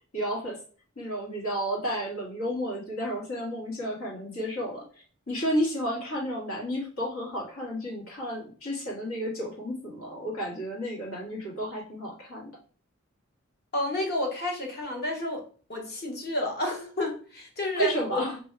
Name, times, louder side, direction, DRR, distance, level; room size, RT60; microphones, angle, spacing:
voice 1, 0.1-0.6 1.0-12.5 17.7-18.4, equal, 80° left, -3 dB, 1.8 m, -32 dB
voice 2, 13.7-15.4 15.7-18.2, left 2 dB, 50° left, 1 dB, 1.1 m, -30 dB
3.1 x 2.7 x 4.5 m, 0.41 s
head